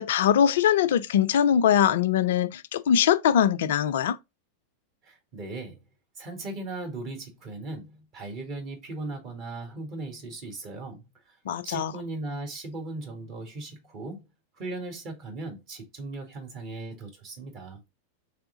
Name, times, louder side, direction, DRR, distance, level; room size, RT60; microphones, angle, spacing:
voice 1, 0.0-4.2 11.5-11.9, left 9 dB, 55° left, 0.3 m, -22 dB
voice 2, 5.0-5.8 6.2-11.1 11.6-14.2 14.6-17.8, right 2 dB, 40° right, 1.6 m, -38 dB
3.5 x 3.4 x 3.8 m
figure-of-eight pair, 90°, 0 cm